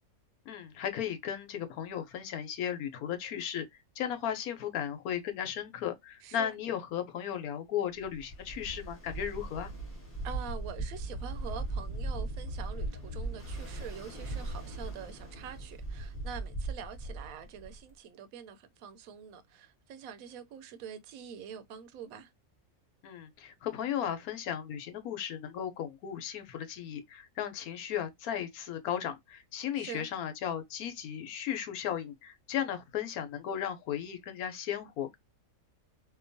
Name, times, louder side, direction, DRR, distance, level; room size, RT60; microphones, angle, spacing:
voice 1, 0.5-3.6 4.0-9.7 23.0-35.2, left 9 dB, 80° left, 1.1 m, -35 dB
voice 2, 6.2-6.5 10.2-22.3 29.8-30.1, right 7 dB, 75° right, 1.0 m, -45 dB
Ocean, 8.0-17.9, right 2 dB, 10° left, 1.0 m, -38 dB
2.9 x 2.2 x 2.5 m
omnidirectional pair, 1.6 m